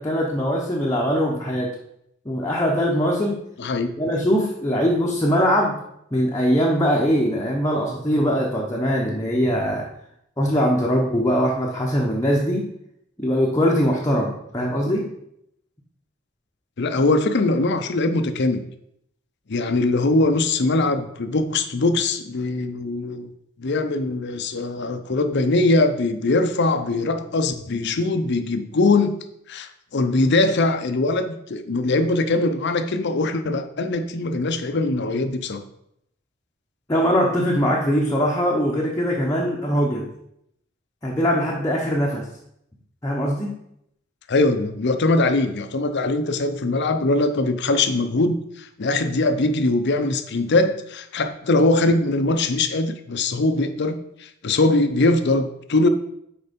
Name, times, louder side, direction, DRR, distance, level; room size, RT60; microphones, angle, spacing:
voice 1, 0.0-1.7 2.2-3.4 4.0-5.8 6.1-9.8 10.4-12.7 13.2-15.0 36.9-40.1 41.0-42.3 43.0-43.5, equal, 15° left, -3 dB, 0.9 m, -21 dB
voice 2, 3.6-3.9 16.8-18.6 19.5-23.3 23.6-29.1 29.5-35.6 44.3-55.9, left 2 dB, 55° left, 8 dB, 0.7 m, -21 dB
6.6 x 4.7 x 5.2 m, 0.76 s
head